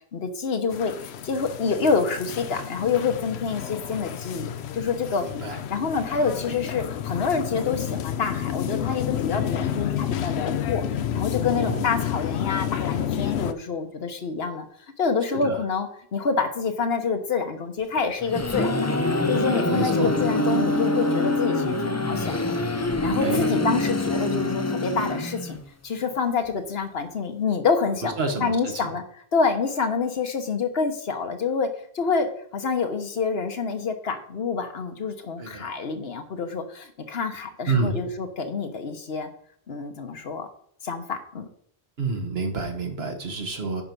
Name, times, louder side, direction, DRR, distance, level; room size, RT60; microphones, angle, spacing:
voice 1, 0.1-5.3 5.7-14.7 15.0-22.4 23.0-25.6 25.8-28.1 28.4-29.0 29.3-31.7 31.9-32.3 32.5-39.3 39.7-40.5 40.8-41.5, left 5 dB, 70° left, 6 dB, 1.3 m, -27 dB
sound 1, 0.7-13.5, left 9 dB, 85° left, 0.9 m, -30 dB
voice 2, 5.3-5.6 11.5-11.9 15.3-15.6 19.7-20.1 23.2-23.5 28.0-29.0 35.4-35.8 37.7-38.0 42.0-43.8, right 3 dB, 70° right, 4 dB, 1.6 m, -29 dB
sound 2, 18.0-25.7, left 2 dB, 20° left, 0.6 m, -25 dB
10.0 x 4.7 x 5.3 m, 0.63 s
omnidirectional pair, 1.1 m